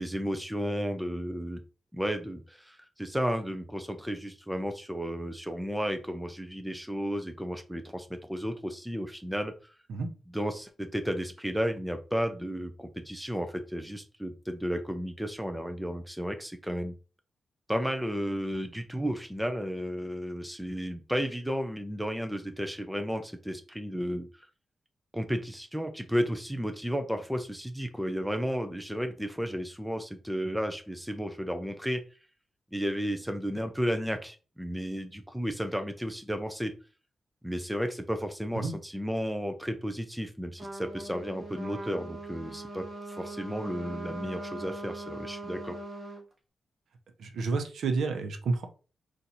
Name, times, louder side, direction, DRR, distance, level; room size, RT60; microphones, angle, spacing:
voice 1, 0.0-1.6 1.9-9.5 10.3-16.9 17.7-24.3 25.1-32.0 32.7-36.7 37.4-45.8, equal, ahead, 7 dB, 0.4 m, -33 dB
Trumpet, 40.6-46.2, right 2 dB, 30° right, 1.0 m, -40 dB
voice 2, 47.2-48.6, right 4 dB, 80° right, 6 dB, 0.7 m, -30 dB
4.3 x 2.5 x 4.0 m, 0.35 s
wide cardioid pair, 175°, 0 cm